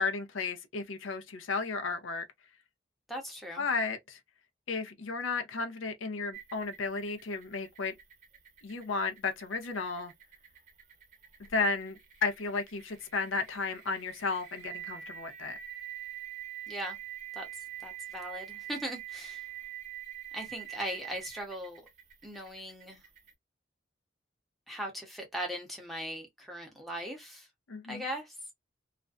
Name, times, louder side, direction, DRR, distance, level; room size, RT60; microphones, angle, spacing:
voice 1, 0.0-2.2 3.6-4.2 4.7-7.9 8.6-10.1 11.5-15.6 27.7-28.0, left 4 dB, 85° left, 0.6 m, -33 dB
voice 2, 3.1-3.6 16.7-17.0 17.4-17.5 17.8-19.5 20.3-21.8 22.2-23.0 24.7-27.5 27.9-28.3, equal, ahead, 0.7 m, -39 dB
sound 1, 6.3-23.3, right 12 dB, 40° right, 0.7 m, -46 dB
2.4 x 2.1 x 2.4 m
head